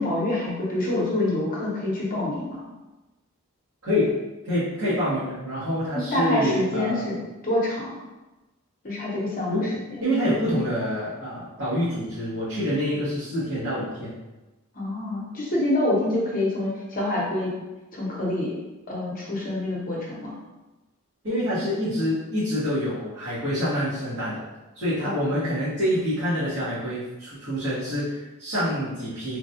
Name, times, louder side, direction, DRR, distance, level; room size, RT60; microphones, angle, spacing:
voice 1, 0.0-2.6 5.9-7.2 7.4-8.0 8.8-10.0 14.7-17.5 17.9-18.5 18.9-20.3 25.0-25.2, left 1 dB, 40° left, -4 dB, 0.8 m, -26 dB
voice 2, 3.8-4.2 4.4-7.2 9.5-9.7 10.0-14.1 21.2-24.4 24.7-29.4, equal, 65° right, -15 dB, 1.3 m, -26 dB
3.2 x 2.2 x 2.7 m, 1.1 s
head